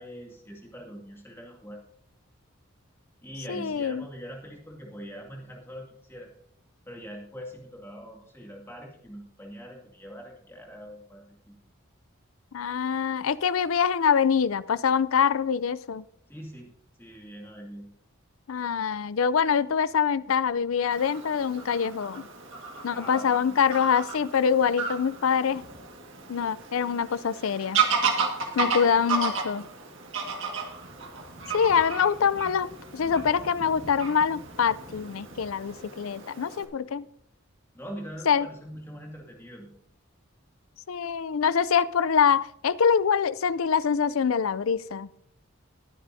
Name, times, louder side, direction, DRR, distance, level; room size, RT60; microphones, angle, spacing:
voice 1, 0.0-1.8 3.2-6.3 6.9-11.6 16.3-16.7 17.0-17.9 22.9-23.8 28.4-28.9 37.7-39.7, equal, 10° left, 0 dB, 2.2 m, -43 dB
voice 2, 3.5-4.0 12.5-16.0 18.5-22.3 22.8-25.6 26.3-27.8 28.5-29.7 31.5-37.0 38.3-38.5 40.9-45.1, left 7 dB, 85° left, 17 dB, 0.5 m, -25 dB
Fowl / Bird vocalization bird call bird song, 20.9-36.6, right 5 dB, 65° right, 1.8 m, -33 dB
20.0 x 9.8 x 2.7 m, 0.67 s
head